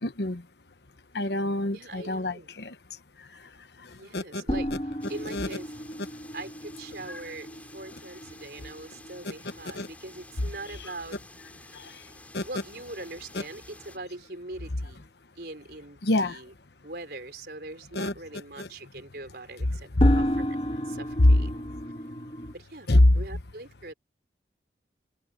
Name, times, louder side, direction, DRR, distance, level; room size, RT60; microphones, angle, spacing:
voice 1, 0.0-0.4 1.1-2.7 4.1-4.4 5.3-5.5 9.7-9.9 12.3-12.4 16.0-16.4 17.9-18.1 18.6-18.7 20.0-20.1 21.2-21.3 22.9-23.2, left 1 dB, 70° left, 1.1 m, -23 dB
voice 2, 1.7-2.5 4.0-5.7 6.3-11.2 12.4-15.0 15.4-16.5 16.8-20.6 20.8-21.5 22.5-22.9 23.1-23.9, right 2 dB, 60° right, 4.3 m, -42 dB
sound 1, 4.5-11.1 11.4-11.5 11.9-12.0 20.0-22.5, equal, 30° left, 2.2 m, -33 dB
sound 2, 5.0-14.0, left 2 dB, 10° left, 6.0 m, -50 dB
head